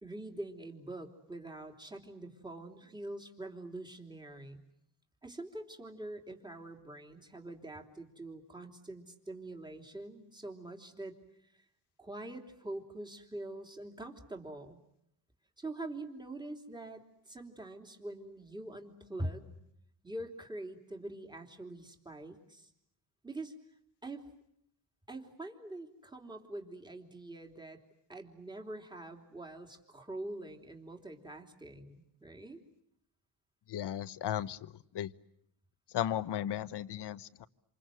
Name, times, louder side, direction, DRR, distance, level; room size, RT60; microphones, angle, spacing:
voice 1, 0.0-4.6 5.2-11.1 12.0-14.8 15.6-19.5 20.0-22.7 23.2-23.5 24.0-24.2 25.1-27.8 28.1-32.6, right 1 dB, 10° right, 4 dB, 3.3 m, -44 dB
voice 2, 33.7-35.1 35.9-37.5, left 11 dB, 60° left, 14 dB, 1.1 m, -35 dB
28.0 x 27.5 x 7.8 m, 0.75 s
cardioid pair, 125°, 47 cm